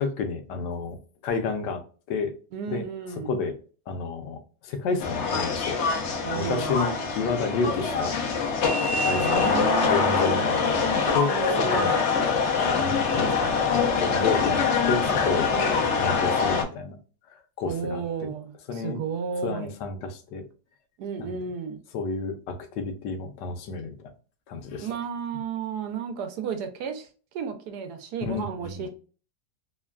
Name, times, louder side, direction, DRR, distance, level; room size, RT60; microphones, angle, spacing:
voice 1, 0.0-1.8 2.1-2.3 2.7-2.8 3.2-3.5 3.9-5.8 6.3-8.1 8.9-10.8 11.1-11.4 11.7-11.9 12.8-13.3 13.7-15.5 16.0-17.0 17.6-18.3 18.7-19.0 19.4-20.4 21.2-21.4 21.9-23.9 24.5-24.9 28.2-28.9, left 4 dB, 85° left, 1.2 m, -30 dB
voice 2, 2.5-3.4 6.2-6.7 9.1-10.5 11.3-12.1 15.5-16.0 17.6-19.7 21.0-21.8 24.8-27.1 27.3-28.9, right 6 dB, 75° right, 1.1 m, -33 dB
sound 1, 5.0-16.6, left 5 dB, 65° left, 0.7 m, -24 dB
3.2 x 2.1 x 2.3 m
omnidirectional pair, 1.8 m